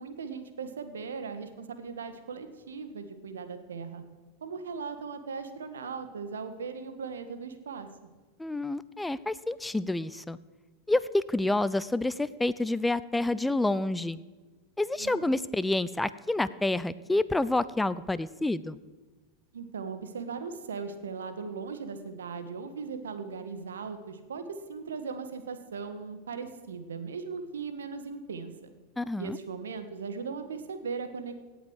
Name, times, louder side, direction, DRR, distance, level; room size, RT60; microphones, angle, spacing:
voice 1, 0.0-4.0 4.4-7.9 15.0-15.4 19.5-28.5 29.2-31.4, right 5 dB, 80° right, 9 dB, 1.5 m, -38 dB
voice 2, 8.4-10.4 10.9-14.2 14.8-18.8 29.0-29.4, left 2 dB, 10° left, 16 dB, 0.6 m, -28 dB
17.0 x 8.0 x 6.5 m, 1.3 s
hypercardioid pair, 90°, 0 cm